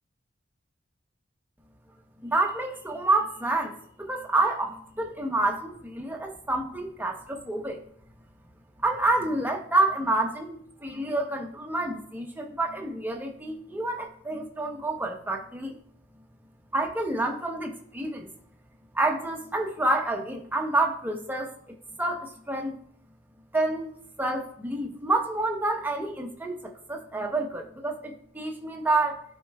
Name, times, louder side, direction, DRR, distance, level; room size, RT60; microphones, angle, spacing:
voice 1, 2.2-7.8 8.8-15.7 16.7-18.3 18.9-22.8 23.5-23.9 24.2-29.2, right 2 dB, 10° right, 2 dB, 0.8 m, -28 dB
12.5 x 4.5 x 2.3 m, 0.64 s
head